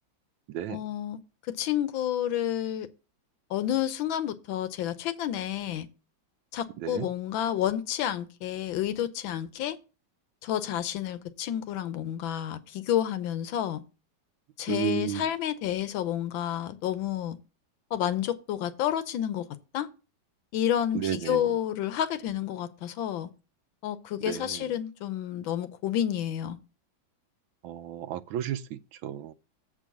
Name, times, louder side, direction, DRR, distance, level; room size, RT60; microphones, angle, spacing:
voice 1, 0.7-1.2 1.5-2.9 3.5-5.9 6.5-9.8 10.4-13.8 14.6-17.4 17.9-19.4 19.7-19.9 20.5-23.3 23.8-26.6, left 11 dB, 80° left, 1.5 m, -30 dB
voice 2, 14.7-15.2 20.9-21.4 24.3-24.6 27.6-29.3, right 11 dB, 85° right, 1.4 m, -32 dB
7.5 x 4.7 x 7.0 m
omnidirectional pair, 2.2 m